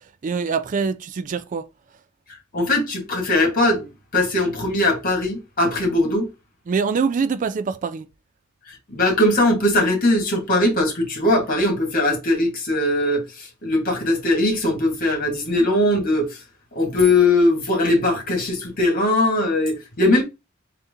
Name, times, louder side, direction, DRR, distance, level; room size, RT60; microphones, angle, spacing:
voice 1, 0.2-1.7 6.7-8.1, right 5 dB, 35° right, 0.3 m, -24 dB
voice 2, 2.5-3.9 4.1-6.3 8.7-16.4 16.8-20.2, left 1 dB, 40° left, 1.8 m, -20 dB
3.8 x 2.9 x 3.6 m
head